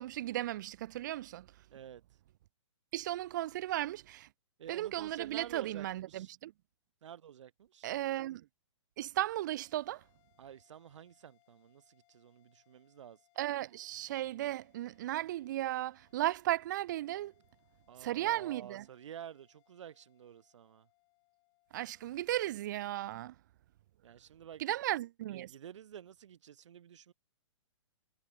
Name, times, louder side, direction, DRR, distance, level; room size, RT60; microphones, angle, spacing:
voice 1, 0.0-1.5 2.9-4.3 4.7-6.5 7.8-8.4 9.0-10.0 13.4-17.3 18.0-18.8 21.7-23.3 24.6-25.5, right 14 dB, 40° right, 0.4 m, -35 dB
voice 2, 1.7-2.0 4.6-6.3 7.0-7.9 10.4-13.2 17.9-20.9 24.0-24.6 25.3-27.1, right 9 dB, 70° right, 0.9 m, -50 dB
sound 1, 9.3-23.9, left 25 dB, 25° left, 7.1 m, -74 dB
hypercardioid pair, 155°, 16 cm